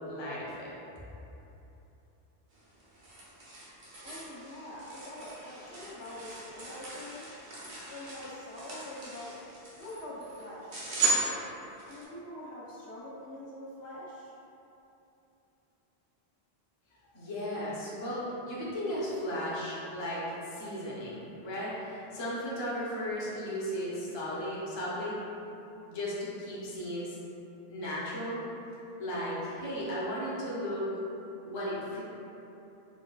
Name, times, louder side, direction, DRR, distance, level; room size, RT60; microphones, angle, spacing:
voice 1, 0.0-0.7 17.1-25.2 25.9-27.2 27.7-28.4 29.0-30.9 31.4-32.0, equal, 30° left, -8 dB, 0.6 m, -35 dB
sound 1, 2.5-12.0, right 3 dB, 85° right, 1.0 m, -37 dB
voice 2, 4.0-7.3 7.9-9.4 9.7-11.0 11.8-14.3, left 1 dB, 80° left, -7 dB, 1.0 m, -44 dB
4.6 x 2.3 x 2.3 m, 3.0 s
omnidirectional pair, 1.1 m